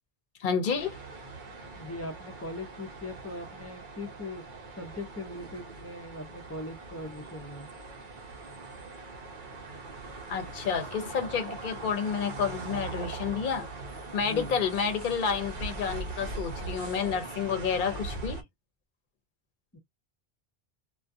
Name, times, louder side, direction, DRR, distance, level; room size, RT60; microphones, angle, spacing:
voice 1, 0.4-1.0 10.3-13.7 14.1-18.4, left 6 dB, 55° left, 0.8 m, -30 dB
sound 1, 0.7-18.4, right 3 dB, 55° right, 0.8 m, -41 dB
voice 2, 1.7-4.4 4.8-7.7 14.2-14.5 19.7-19.8, left 2 dB, 20° left, 0.5 m, -40 dB
2.4 x 2.2 x 2.6 m
omnidirectional pair, 1.0 m